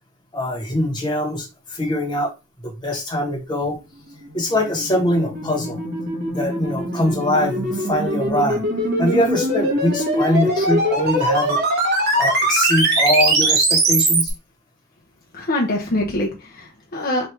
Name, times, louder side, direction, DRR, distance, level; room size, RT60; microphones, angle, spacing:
voice 1, 0.3-2.3 2.6-3.8 4.3-5.8 6.3-8.6 9.0-11.6 12.2-14.3, left 1 dB, 20° left, 1.2 m, -22 dB
sound 1, 4.4-14.3, right 1 dB, 50° right, 1.2 m, -21 dB
voice 2, 15.3-17.3, left 1 dB, 45° left, 0.7 m, -24 dB
3.3 x 2.5 x 4.5 m
head